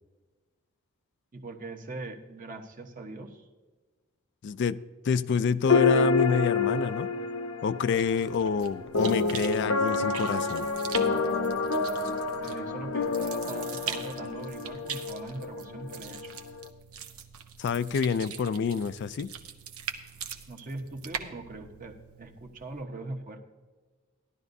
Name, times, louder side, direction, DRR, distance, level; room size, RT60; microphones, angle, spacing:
voice 1, 1.3-3.5 12.4-16.3 20.5-23.4, right 2 dB, 40° right, 3 dB, 1.1 m, -41 dB
voice 2, 4.4-7.1 7.6-10.7 17.6-19.3, left 6 dB, 55° left, 14 dB, 0.3 m, -27 dB
sound 1, 5.6-16.7, left 4 dB, 80° left, 0.8 m, -29 dB
sound 2, 7.9-22.8, right 7 dB, 85° right, 0.9 m, -42 dB
15.5 x 11.5 x 2.7 m, 1.4 s
head